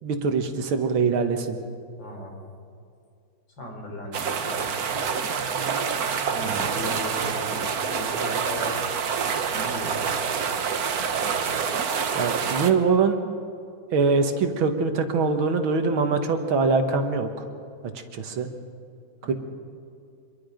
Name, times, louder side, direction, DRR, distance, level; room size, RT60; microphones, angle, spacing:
voice 1, 0.0-1.6 6.4-6.7 12.1-13.2 13.9-17.3 18.1-18.5 19.3-19.4, right 4 dB, 80° right, 6 dB, 2.3 m, -23 dB
voice 2, 2.0-2.4 3.6-4.7 6.1-8.9 9.5-10.0 19.2-19.3, left 1 dB, 65° left, 1 dB, 4.5 m, -37 dB
sound 1, 4.1-12.7, right 6 dB, 55° right, 1.4 m, -27 dB
26.0 x 22.0 x 5.2 m, 2.4 s
omnidirectional pair, 2.2 m